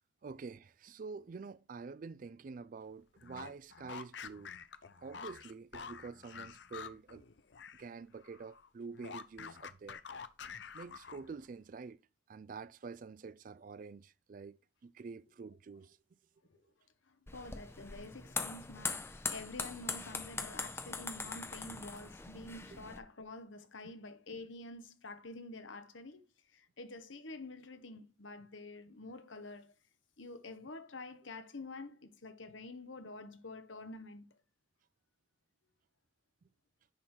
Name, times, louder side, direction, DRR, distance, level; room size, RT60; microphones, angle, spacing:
voice 1, 0.2-4.5 5.0-7.2 7.8-10.0 10.7-12.0 12.3-16.0 23.8-23.9, right 4 dB, 45° right, 0.3 m, -47 dB
sound 1, 3.2-7.9 8.2-11.5, left 6 dB, 65° left, 0.6 m, -48 dB
voice 2, 17.1-26.2 26.5-29.7 30.2-34.3, left 2 dB, 85° left, 1.2 m, -48 dB
sound 2, 17.3-23.0, left 4 dB, 15° left, 0.5 m, -41 dB
10.0 x 3.8 x 4.4 m
head